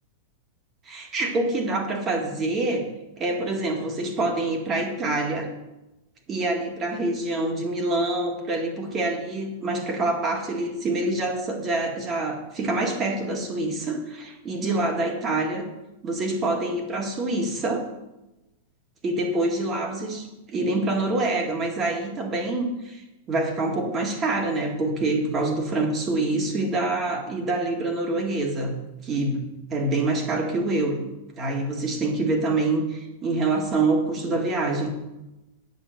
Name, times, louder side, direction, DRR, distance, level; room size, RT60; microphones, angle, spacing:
voice 1, 0.9-2.9 3.2-5.5 6.3-15.7 16.0-17.9 19.0-20.3 20.5-31.1 31.4-34.9, right 2 dB, 20° right, 2 dB, 1.9 m, -26 dB
9.3 x 6.7 x 7.7 m, 0.98 s
supercardioid pair, 160°, 0 cm